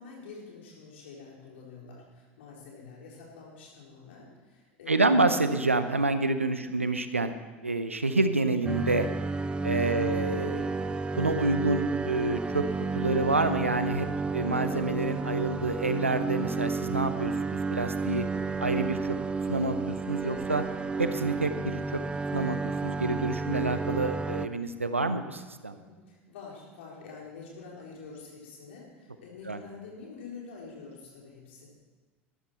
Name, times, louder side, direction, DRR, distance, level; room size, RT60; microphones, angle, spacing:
voice 1, 0.0-5.3 6.6-6.7 10.0-10.2 20.2-20.5 25.7-31.7, left 4 dB, 65° left, -2 dB, 3.8 m, -47 dB
voice 2, 4.9-7.3 7.6-9.1 9.6-10.7 11.1-12.6 12.9-14.1 14.3-18.2 18.6-19.2 19.5-20.6 21.0-22.0 22.3-25.8 29.5-29.6, right 2 dB, 90° right, 10 dB, 0.7 m, -28 dB
sound 1, 8.6-24.5, right 4 dB, 15° right, 0.6 m, -31 dB
13.0 x 12.5 x 4.4 m, 1.3 s
figure-of-eight pair, 75°, 7 cm